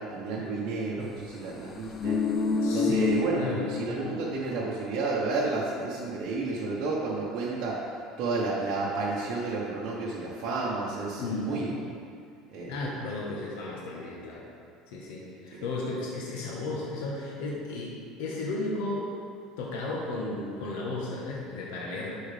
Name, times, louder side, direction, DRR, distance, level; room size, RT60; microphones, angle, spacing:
voice 1, 0.0-2.2 2.7-7.8 8.2-11.7 12.5-12.8 15.5-15.6, right 3 dB, 50° right, -6 dB, 1.2 m, -31 dB
sound 1, 1.7-4.3 4.6-4.8, left 4 dB, 30° left, 0.5 m, -28 dB
voice 2, 2.6-3.7 11.1-11.5 12.7-14.4 14.9-17.9 18.2-19.1 19.6-22.2, left 2 dB, 80° left, -4 dB, 1.3 m, -34 dB
11.5 x 4.8 x 3.5 m, 2.4 s
cardioid pair, 130°, 0 cm